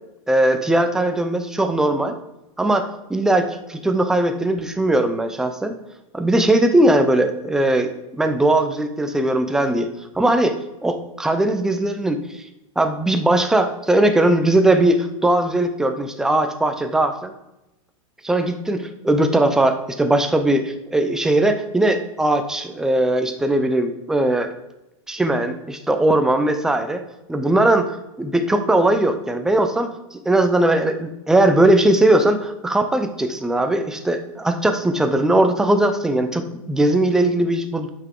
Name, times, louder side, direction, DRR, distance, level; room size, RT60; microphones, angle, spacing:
voice 1, 0.3-2.2 2.6-2.8 3.1-5.7 6.1-9.9 10.1-10.5 10.8-12.4 12.8-17.3 18.2-24.5 25.1-27.0 27.3-37.9, right 1 dB, 5° right, 7 dB, 0.5 m, -19 dB
7.9 x 5.8 x 3.7 m, 0.94 s
supercardioid pair, 150°, 18 cm